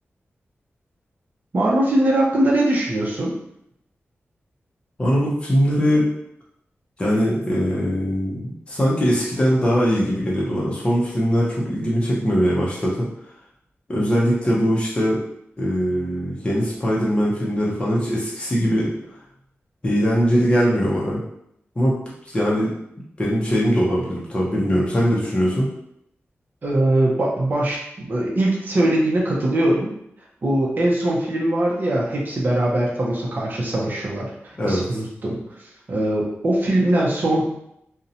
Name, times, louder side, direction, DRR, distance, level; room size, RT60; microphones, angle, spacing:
voice 1, 1.5-3.3 26.6-29.9 30.4-35.4 35.9-37.4, right 1 dB, 45° right, -3 dB, 0.5 m, -21 dB
voice 2, 5.0-6.1 7.0-13.1 13.9-15.2 15.6-18.9 19.8-21.2 21.8-21.9 22.3-22.7 23.2-25.7 34.6-35.0, equal, 25° left, -6 dB, 0.6 m, -21 dB
2.5 x 2.0 x 2.7 m, 0.77 s
wide cardioid pair, 120°, 5 cm